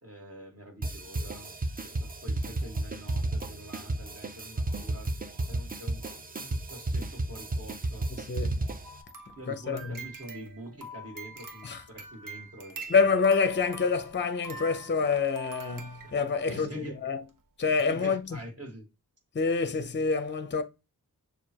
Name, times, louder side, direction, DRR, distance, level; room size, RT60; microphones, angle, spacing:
voice 1, 0.0-5.1 5.4-6.0 6.4-8.1 9.3-12.9 16.0-17.0 17.9-18.9, right 1 dB, 40° right, 1.6 m, -45 dB
sound 1, 0.8-9.0, right 2 dB, 25° right, 0.5 m, -33 dB
voice 2, 8.1-8.7 9.5-10.0 11.6-11.8 12.9-17.2 17.6-18.4 19.3-20.6, left 5 dB, 30° left, 0.5 m, -27 dB
sound 2, 8.8-16.6 17.3-17.4 17.8-17.9 18.3-18.4, right 3 dB, 60° right, 0.9 m, -45 dB
6.6 x 2.3 x 2.8 m
wide cardioid pair, 115°, 37 cm